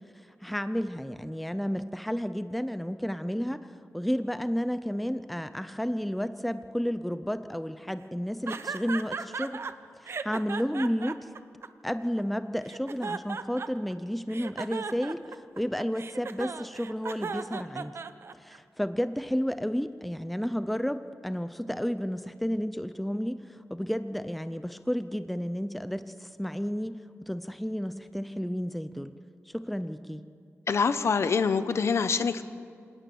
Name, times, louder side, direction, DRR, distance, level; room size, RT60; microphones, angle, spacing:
voice 1, 0.4-3.7 3.9-9.6 10.0-11.2 11.8-15.2 15.6-18.0 18.4-23.4 23.7-26.9 27.2-29.1 29.5-30.2, equal, ahead, 12 dB, 0.6 m, -31 dB
sound 1, 8.5-9.7 10.1-12.2 12.7-13.9 14.3-18.6, right 5 dB, 55° right, 0.8 m, -36 dB
voice 2, 30.7-32.4, left 5 dB, 60° left, 12 dB, 0.9 m, -25 dB
26.5 x 18.5 x 7.0 m, 2.3 s
wide cardioid pair, 155°, 5 cm